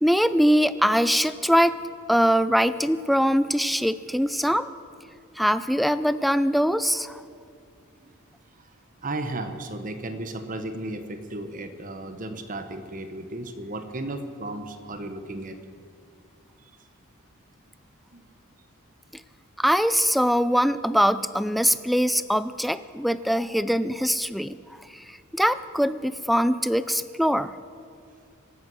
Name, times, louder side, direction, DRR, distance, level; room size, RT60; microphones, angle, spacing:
voice 1, 0.0-1.7 2.1-4.7 5.4-7.2 19.6-27.5, equal, ahead, 14 dB, 0.3 m, -22 dB
voice 2, 9.0-15.6 18.1-18.2, right 2 dB, 40° right, 8 dB, 1.1 m, -34 dB
25.0 x 8.5 x 6.2 m, 2.3 s
head